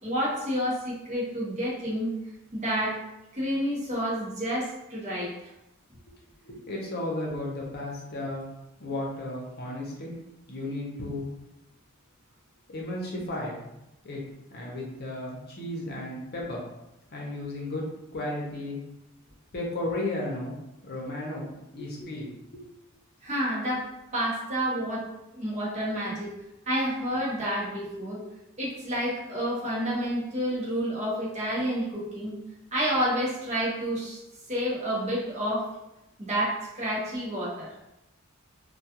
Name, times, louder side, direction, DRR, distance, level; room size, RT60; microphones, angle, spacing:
voice 1, 0.0-2.1 2.5-3.0 3.3-5.3 23.2-23.9 24.1-26.3 26.7-28.2 28.6-32.4 32.7-34.2 34.5-35.7 36.2-37.8, equal, 35° right, -6 dB, 0.8 m, -29 dB
voice 2, 6.4-8.5 8.8-10.1 10.5-11.3 12.7-13.7 14.0-14.2 14.5-16.6 17.1-17.8 18.1-18.8 19.5-20.5 20.8-21.5 21.7-22.6, left 1 dB, 50° left, -2 dB, 0.7 m, -34 dB
2.3 x 2.2 x 2.8 m, 0.90 s
head